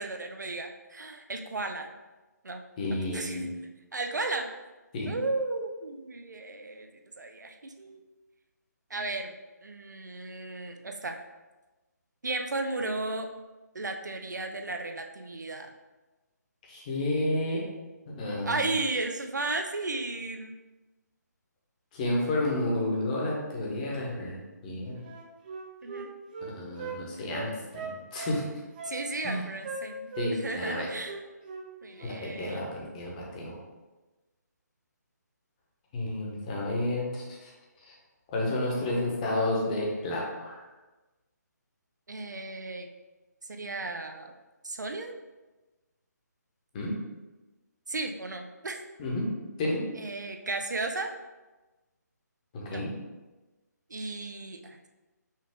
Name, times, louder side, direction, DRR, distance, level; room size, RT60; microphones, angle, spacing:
voice 1, 0.0-1.9 2.4-2.6 3.1-3.4 3.9-4.5 5.1-6.9 7.2-8.0 8.9-9.3 9.6-11.2 12.2-13.3 13.7-15.7 18.4-20.5 25.8-26.1 28.8-31.2 31.8-32.6 42.1-42.9 43.5-44.3 44.6-45.1 47.9-48.8 50.0-51.1 52.7-52.8 53.9-54.9, right 2 dB, 75° right, 5 dB, 0.5 m, -34 dB
voice 2, 2.8-3.5 4.9-5.1 16.7-17.6 18.1-18.7 21.9-25.0 26.4-28.4 29.2-29.5 30.2-30.9 32.0-33.6 35.9-37.5 37.8-38.0 38.3-40.7 46.7-46.9 49.0-49.2 49.6-49.8 52.5-52.9, left 1 dB, 25° left, -2 dB, 0.9 m, -31 dB
Wind instrument woodwind instrument, 25.0-27.0 27.3-28.4 28.8-29.4 29.6-30.3 30.6-30.8 31.0-31.7 31.9-32.2, right 4 dB, 30° right, 0.5 m, -39 dB
5.5 x 2.4 x 3.6 m, 1.2 s
figure-of-eight pair, 145°, 10 cm